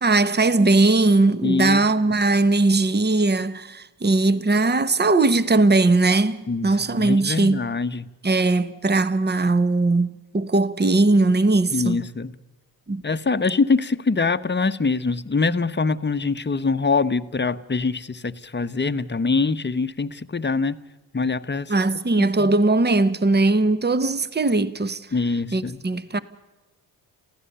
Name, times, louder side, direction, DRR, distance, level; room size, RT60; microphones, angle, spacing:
voice 1, 0.0-7.7 8.2-12.1 12.9-13.0 21.7-25.0 25.5-26.2, right 2 dB, 20° right, 1.3 m, -19 dB
voice 2, 1.4-1.9 6.5-8.1 11.7-12.3 13.0-20.8 21.1-21.7 22.2-22.5 25.1-25.8, left 4 dB, 20° left, 1.1 m, -24 dB
28.0 x 16.0 x 6.9 m
hypercardioid pair, 50°, 48 cm